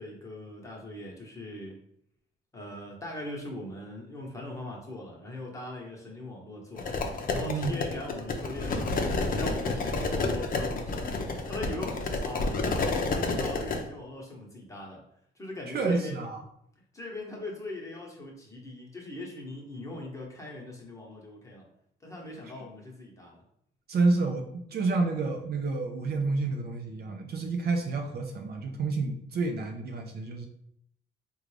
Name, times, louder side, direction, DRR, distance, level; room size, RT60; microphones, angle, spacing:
voice 1, 0.0-1.8 2.5-15.0 15.4-16.2 16.9-21.7 22.0-23.4, left 1 dB, 15° left, -2 dB, 1.0 m, -40 dB
sound 1, 6.8-13.8, left 3 dB, 45° left, 0.6 m, -30 dB
voice 2, 7.5-7.8 15.7-16.4 23.9-30.5, right 3 dB, 55° right, 4 dB, 0.5 m, -29 dB
3.7 x 2.3 x 3.2 m, 0.72 s
cardioid pair, 90°, 20 cm